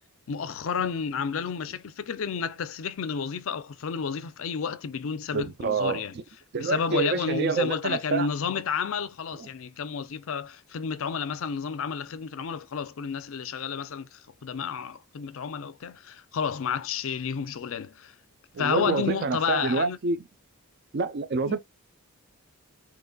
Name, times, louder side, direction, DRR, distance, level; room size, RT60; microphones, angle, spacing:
voice 1, 0.3-6.2 6.6-18.1 18.6-20.0 21.4-21.6, left 6 dB, 65° left, 0.4 m, -31 dB
voice 2, 5.3-6.0 6.5-8.3 18.5-20.2 20.9-21.6, right 4 dB, 50° right, 0.4 m, -27 dB
3.9 x 3.0 x 2.2 m
head